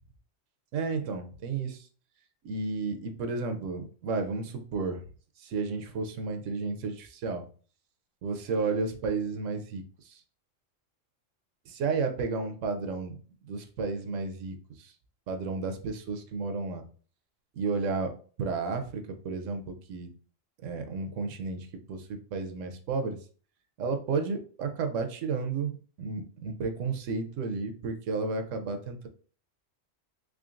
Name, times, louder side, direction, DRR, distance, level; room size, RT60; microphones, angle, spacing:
voice 1, 0.7-1.9 2.4-5.0 5.4-7.5 8.2-10.2 11.6-13.2 13.5-14.9 15.3-16.8 17.5-20.1 20.6-23.3 23.8-29.1, right 4 dB, 85° right, 6 dB, 1.0 m, -32 dB
3.7 x 3.2 x 2.5 m, 0.41 s
omnidirectional pair, 1.3 m